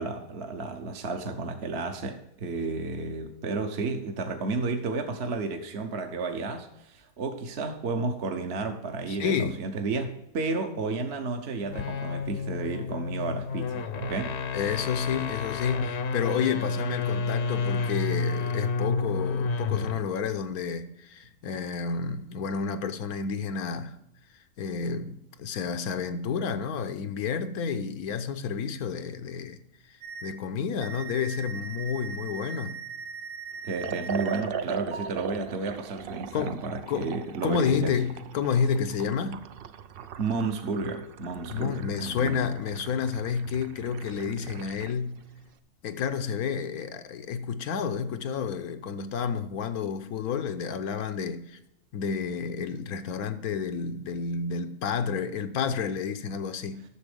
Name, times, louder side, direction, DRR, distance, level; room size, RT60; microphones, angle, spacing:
voice 1, 0.0-14.4 33.6-38.0 40.2-42.4, right 3 dB, 50° right, 1.1 m, -32 dB
voice 2, 9.1-9.6 14.5-24.0 24.6-29.6 29.9-32.8 36.3-36.6 36.9-37.2 37.4-39.4 41.5-45.2 45.8-51.6 51.9-56.8, left 6 dB, 80° left, 1.3 m, -30 dB
sound 1, 11.6-20.1, left 4 dB, 55° left, 0.9 m, -30 dB
sound 2, 30.0-30.3 30.8-34.4 34.9-35.1, right 6 dB, 85° right, 1.7 m, -39 dB
Liquid, 33.8-45.0, right 8 dB, 70° right, 0.5 m, -39 dB
10.0 x 6.8 x 5.1 m
omnidirectional pair, 1.6 m